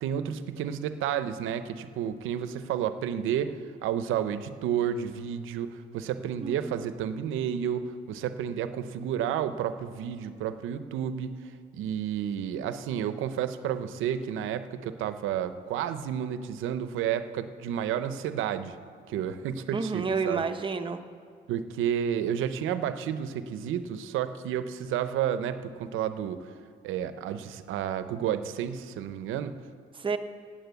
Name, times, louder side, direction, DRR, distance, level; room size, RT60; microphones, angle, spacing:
voice 1, 0.0-11.4 11.7-18.8 19.1-20.4 21.5-26.5 26.8-29.6, right 9 dB, 90° right, 11 dB, 0.7 m, -31 dB
voice 2, 6.4-6.9 19.7-21.0 29.9-30.2, right 4 dB, 25° right, 7 dB, 0.8 m, -30 dB
9.0 x 8.8 x 8.0 m, 2.3 s
cardioid pair, 90°, 20 cm